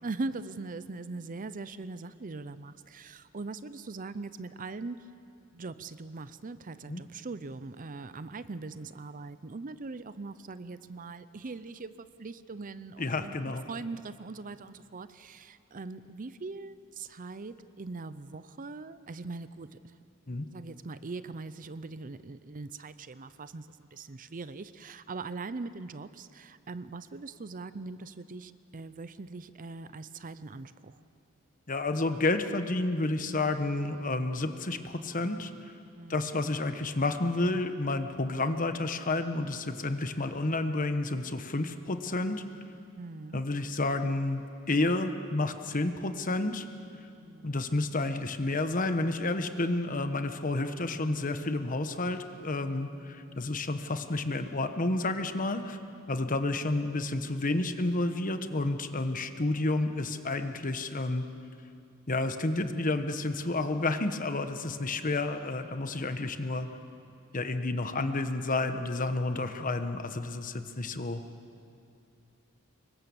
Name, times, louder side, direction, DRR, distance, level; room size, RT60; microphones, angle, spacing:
voice 1, 0.0-5.0 5.5-19.8 20.5-31.0 35.9-36.4 43.0-43.4 47.2-47.7 52.9-53.5, right 3 dB, 40° right, 14 dB, 0.6 m, -41 dB
voice 2, 13.0-13.6 20.3-20.5 31.7-35.5 36.1-42.4 43.3-46.6 47.4-55.8 56.1-61.3 62.1-66.7 67.3-71.2, left 2 dB, 40° left, 8 dB, 1.2 m, -30 dB
25.0 x 22.5 x 7.1 m, 2.6 s
head